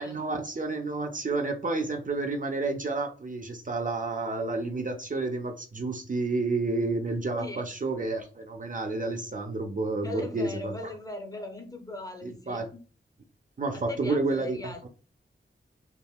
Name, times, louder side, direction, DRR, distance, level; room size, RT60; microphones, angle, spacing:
voice 1, 0.0-10.7 12.2-12.7 13.6-14.9, right 3 dB, 40° right, 4 dB, 0.4 m, -30 dB
voice 2, 10.0-12.8 13.7-14.8, left 2 dB, 15° left, 4 dB, 0.6 m, -39 dB
3.5 x 2.1 x 2.3 m, 0.37 s
wide cardioid pair, 60°, 21 cm